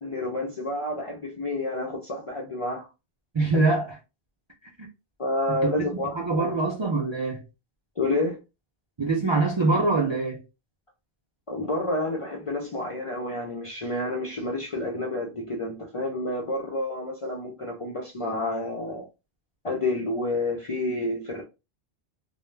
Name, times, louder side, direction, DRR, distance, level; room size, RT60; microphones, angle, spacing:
voice 1, 0.0-2.9 5.2-6.6 8.0-8.4 11.5-19.1 19.6-21.4, left 2 dB, 50° left, 0.4 m, -29 dB
voice 2, 3.3-3.9 5.5-5.7 6.1-7.4 9.0-10.4, right 3 dB, 50° right, 0.3 m, -24 dB
2.2 x 2.0 x 3.1 m
omnidirectional pair, 1.1 m